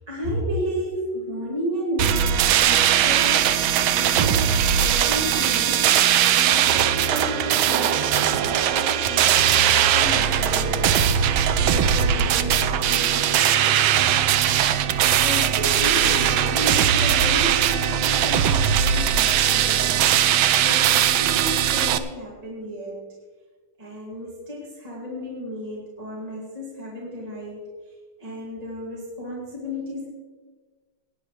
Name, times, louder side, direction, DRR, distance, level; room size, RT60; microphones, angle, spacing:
voice 1, 0.1-5.9 6.4-11.0 11.6-14.0 15.1-20.0 20.6-23.1 23.8-30.1, equal, 20° right, -5 dB, 2.3 m, -33 dB
sound 1, 2.0-22.0, right 9 dB, 80° right, 1.4 m, -20 dB
18.0 x 9.8 x 3.3 m, 1.4 s
omnidirectional pair, 2.2 m